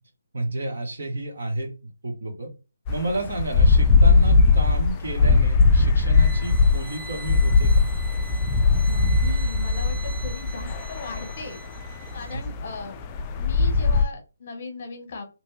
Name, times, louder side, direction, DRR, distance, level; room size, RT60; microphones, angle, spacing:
voice 1, 0.3-2.5 2.9-7.9 12.3-12.4, right 1 dB, 65° right, 1 dB, 1.2 m, -31 dB
sound 1, 2.9-14.0, left 4 dB, 20° left, 0.3 m, -20 dB
sound 2, 6.1-12.5, right 5 dB, 20° right, 0.9 m, -43 dB
voice 2, 8.8-11.6 11.9-13.0 13.4-15.2, left 3 dB, 45° left, 4 dB, 1.0 m, -38 dB
2.9 x 2.1 x 3.2 m, 0.30 s
figure-of-eight pair, 150°, 0 cm